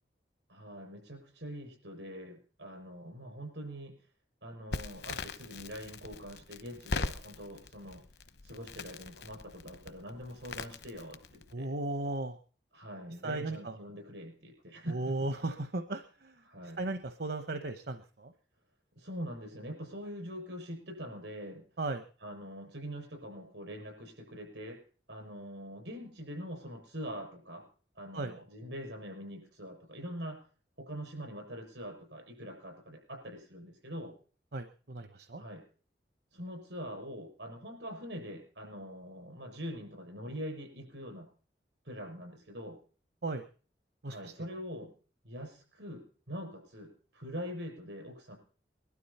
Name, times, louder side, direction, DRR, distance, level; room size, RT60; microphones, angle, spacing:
voice 1, 0.5-3.9 4.4-8.0 8.4-11.7 12.7-15.3 16.4-16.8 19.0-21.6 22.2-24.8 25.1-27.6 27.9-30.4 30.8-34.1 35.4-35.6 36.3-41.3 41.8-42.8 44.0-44.9 45.2-48.4, equal, 85° right, 3 dB, 6.5 m, -43 dB
Crackle, 4.7-11.5, left 3 dB, 65° left, 1.0 m, -41 dB
voice 2, 11.5-12.4 13.2-13.8 14.9-16.3 16.8-18.3 21.8-22.0 28.1-28.3 34.5-35.4 43.2-43.4 44.0-44.3, right 2 dB, 65° right, 8 dB, 0.9 m, -36 dB
21.5 x 12.5 x 4.3 m, 0.41 s
head